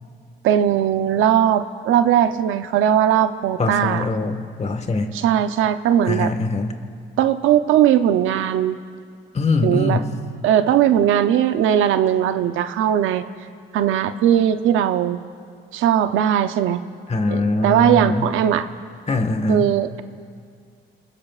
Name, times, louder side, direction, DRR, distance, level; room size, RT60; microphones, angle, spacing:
voice 1, 0.4-4.1 5.1-6.3 7.2-8.8 9.6-10.0 10.4-13.2 13.7-15.2 15.7-16.8 17.3-18.7 19.5-20.0, right 10 dB, 85° right, 10 dB, 0.7 m, -19 dB
voice 2, 3.6-5.1 6.1-6.8 9.3-10.1 17.1-18.3 19.1-19.7, left 2 dB, 35° left, 6 dB, 1.6 m, -22 dB
28.0 x 20.5 x 2.4 m, 2.1 s
cardioid pair, 90°, 20 cm